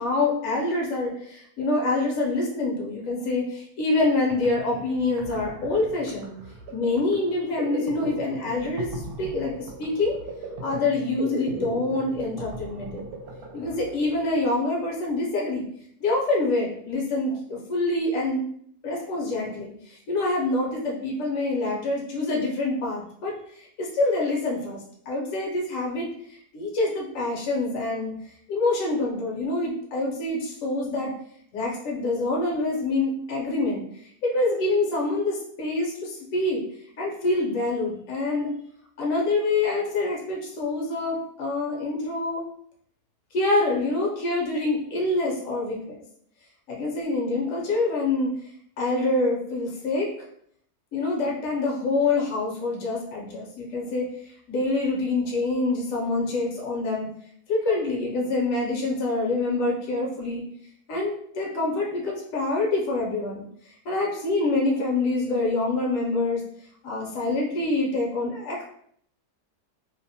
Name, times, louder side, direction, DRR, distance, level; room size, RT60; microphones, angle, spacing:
voice 1, 0.0-6.3 6.7-10.2 10.6-13.1 13.5-15.6 16.0-18.4 18.8-31.1 31.5-36.6 37.0-38.5 39.0-42.4 43.3-46.0 46.7-48.3 48.8-50.1 50.9-57.1 57.5-60.4 60.9-66.4 66.8-68.6, left 2 dB, 65° left, -2 dB, 1.0 m, -26 dB
sound 1, 4.0-4.1 4.3-14.9, right 2 dB, 75° right, 1.0 m, -39 dB
2.7 x 2.0 x 2.7 m, 0.66 s
omnidirectional pair, 1.7 m